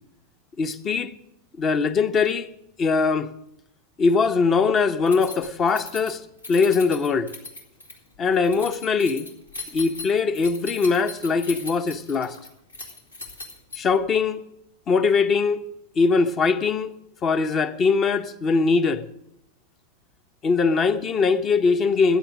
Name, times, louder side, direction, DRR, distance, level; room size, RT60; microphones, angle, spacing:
voice 1, 0.6-1.1 1.6-2.5 2.8-3.3 4.0-6.2 6.5-7.3 8.2-9.3 9.7-12.4 13.8-14.4 14.9-15.7 16.0-16.9 17.2-19.0 20.4-22.2, left 4 dB, 25° left, 0.8 m, -21 dB
Keys jangling, 5.1-14.1, left 3 dB, 80° left, 2.3 m, -39 dB
14.5 x 9.4 x 6.2 m
figure-of-eight pair, 90°, 0 cm